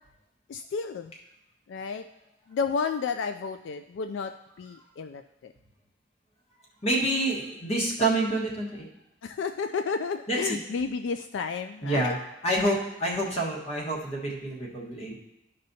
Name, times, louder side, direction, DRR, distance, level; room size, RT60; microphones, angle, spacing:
voice 1, 0.5-1.1 1.7-2.0 2.5-4.3 4.6-5.5 9.2-12.2, left 5 dB, 75° left, 8 dB, 0.3 m, -32 dB
voice 2, 6.8-8.9 10.3-10.6 11.8-12.2 12.4-15.2, right 1 dB, 35° left, -2 dB, 1.4 m, -27 dB
13.0 x 5.3 x 2.7 m, 0.88 s
head